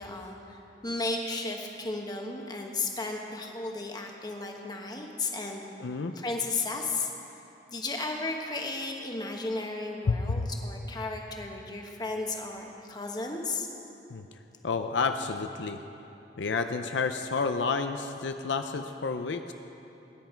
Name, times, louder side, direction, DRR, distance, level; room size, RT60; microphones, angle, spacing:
voice 1, 0.0-5.6 6.1-7.1 7.7-13.7, left 3 dB, 20° left, 2 dB, 1.2 m, -34 dB
voice 2, 5.8-6.1 10.1-10.5 14.1-14.3 14.6-15.8 16.4-19.5, left 4 dB, 75° left, 7 dB, 0.5 m, -30 dB
19.5 x 10.5 x 4.5 m, 3.0 s
head